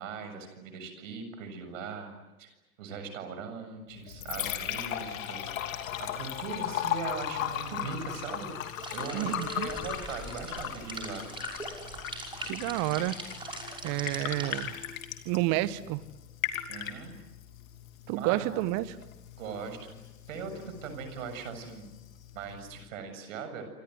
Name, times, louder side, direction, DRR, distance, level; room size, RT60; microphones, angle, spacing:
voice 1, 0.0-2.5 2.8-5.7 6.0-8.5 8.9-9.3 9.6-11.3 16.7-17.2 18.1-18.6 19.4-20.0 20.3-21.9 22.3-23.6, right 5 dB, 60° right, 8 dB, 7.3 m, -40 dB
Liquid, 3.9-22.9, left 11 dB, 60° left, 3.0 m, -38 dB
sound 1, 8.8-14.7, right 2 dB, 10° right, 5.8 m, -42 dB
voice 2, 9.1-9.7 12.4-13.2 13.8-14.8 15.2-16.0 18.1-19.0, right 16 dB, 40° right, 16 dB, 1.4 m, -30 dB
28.0 x 26.0 x 8.0 m, 1.1 s
figure-of-eight pair, 95°, 45 cm